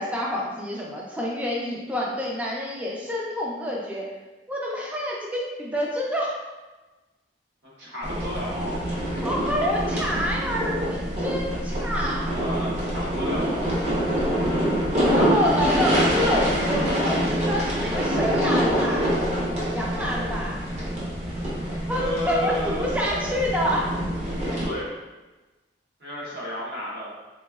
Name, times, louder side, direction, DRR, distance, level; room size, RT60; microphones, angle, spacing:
voice 1, 0.0-4.1 4.5-6.3 9.2-12.3 14.2-14.5 15.0-19.1 19.7-20.6 21.9-24.0, equal, 5° right, -3 dB, 0.4 m, -28 dB
voice 2, 7.6-8.8 12.2-13.8 21.9-23.3 24.6-24.9 26.0-27.1, equal, 65° right, -6 dB, 1.1 m, -32 dB
sound 1, 8.0-24.7, equal, 35° right, 0.8 m, -25 dB
3.4 x 3.0 x 2.3 m, 1.2 s
head